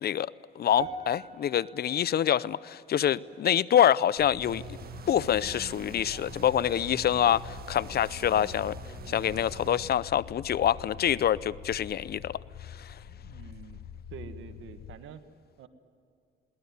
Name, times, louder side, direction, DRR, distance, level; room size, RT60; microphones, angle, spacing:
voice 1, 0.0-4.6 5.1-8.8 9.1-12.4 12.7-12.9, left 10 dB, 50° left, 20 dB, 0.6 m, -26 dB
sound 1, 0.8-5.2 5.4-5.8 6.5-6.6, right 3 dB, 30° right, 2.3 m, -46 dB
sound 2, 4.2-15.0, left 8 dB, 75° left, 0.9 m, -45 dB
sound 3, 4.4-9.9, right 7 dB, 50° right, 1.6 m, -45 dB
voice 2, 13.0-13.8 14.1-15.2 15.6-15.7, right 8 dB, 80° right, 9 dB, 1.6 m, -46 dB
22.5 x 17.5 x 9.4 m, 2.6 s
cardioid pair, 90°, 20 cm